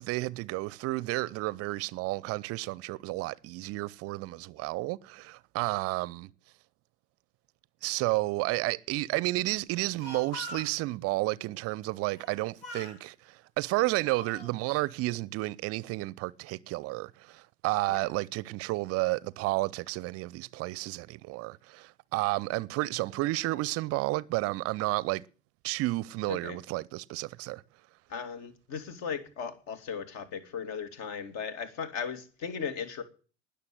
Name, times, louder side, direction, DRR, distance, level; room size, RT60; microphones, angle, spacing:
voice 1, 0.0-6.3 7.8-25.2 25.6-27.6, right 20 dB, 40° right, 0.6 m, -31 dB
Speech, 9.7-10.8 12.1-12.4 12.6-13.0 13.7-14.5, left 1 dB, 65° left, 4.2 m, -44 dB
voice 2, 28.1-33.0, left 6 dB, 50° left, 2.7 m, -37 dB
19.5 x 6.8 x 7.9 m
figure-of-eight pair, 75°, 36 cm